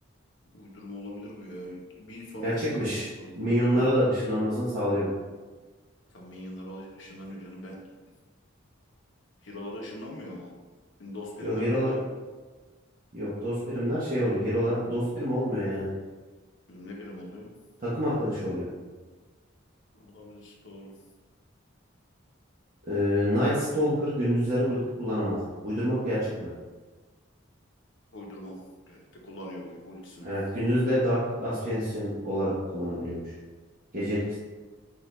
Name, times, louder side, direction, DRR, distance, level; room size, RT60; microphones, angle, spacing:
voice 1, 0.5-3.9 6.1-7.8 9.4-10.5 11.0-12.0 16.7-17.5 19.9-20.9 28.1-28.5 28.9-30.3 34.0-34.3, left 1 dB, 65° left, -2 dB, 1.0 m, -42 dB
voice 2, 2.4-3.0 3.4-5.1 11.4-11.9 13.1-15.9 17.8-18.7 22.8-25.4 25.6-26.5 30.2-33.2 33.9-34.4, equal, 40° right, -11 dB, 1.0 m, -27 dB
6.4 x 2.6 x 3.1 m, 1.3 s
head